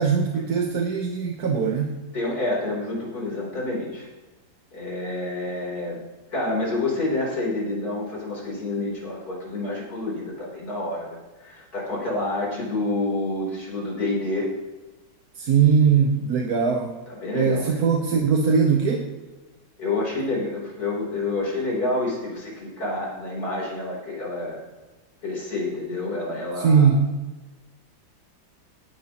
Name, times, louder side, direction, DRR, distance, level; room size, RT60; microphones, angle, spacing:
voice 1, 0.0-1.9 15.4-17.0 17.3-19.1 26.6-27.0, right 6 dB, 60° right, 2 dB, 1.4 m, -20 dB
voice 2, 2.1-4.1 4.7-6.0 6.3-14.5 17.1-17.8 19.8-24.6 25.2-26.9, left 2 dB, 55° left, -4 dB, 4.2 m, -28 dB
18.5 x 10.5 x 3.0 m, 1.2 s
omnidirectional pair, 2.0 m